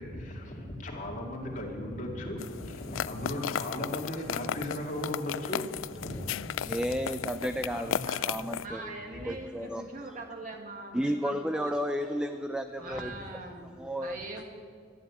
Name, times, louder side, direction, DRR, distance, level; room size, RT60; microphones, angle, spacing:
voice 1, 0.0-6.7 7.7-8.0 9.2-9.3 13.0-13.1, left 1 dB, 40° left, 0 dB, 2.3 m, -37 dB
sound 1, 2.4-8.7, left 9 dB, 90° left, 0.3 m, -35 dB
voice 2, 6.7-8.0 8.2-10.2 10.9-13.3 13.8-14.2, equal, 5° right, 8 dB, 0.4 m, -33 dB
voice 3, 8.6-12.2 12.8-13.7 14.0-14.4, right 2 dB, 45° right, 3 dB, 1.8 m, -42 dB
12.0 x 11.0 x 8.4 m, 2.1 s
head